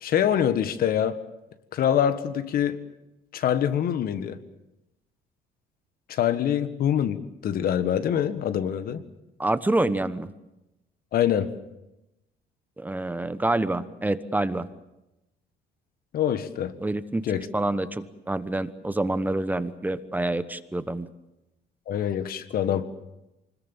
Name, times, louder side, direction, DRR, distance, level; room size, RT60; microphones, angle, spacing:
voice 1, 0.0-1.2 1.7-2.8 3.3-4.4 6.1-9.0 11.1-11.5 16.1-16.7 17.2-17.5 21.9-22.9, left 9 dB, 60° left, 11 dB, 1.6 m, -25 dB
voice 2, 9.4-10.3 12.8-14.7 16.8-17.2 17.5-21.1, right 2 dB, 10° right, 12 dB, 1.2 m, -27 dB
25.5 x 21.0 x 7.4 m, 0.93 s
cardioid pair, 110°, 17 cm